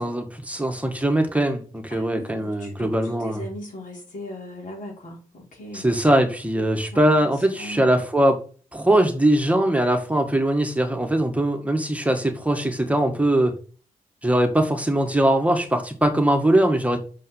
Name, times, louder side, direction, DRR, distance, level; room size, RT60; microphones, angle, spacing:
voice 1, 0.0-3.4 5.7-8.4 8.7-13.5 14.2-17.0, right 1 dB, 10° right, 4 dB, 1.8 m, -21 dB
voice 2, 1.9-5.9 6.9-7.9, left 1 dB, 70° left, -2 dB, 4.7 m, -39 dB
6.5 x 5.4 x 5.6 m, 0.39 s
supercardioid pair, 45°, 15 cm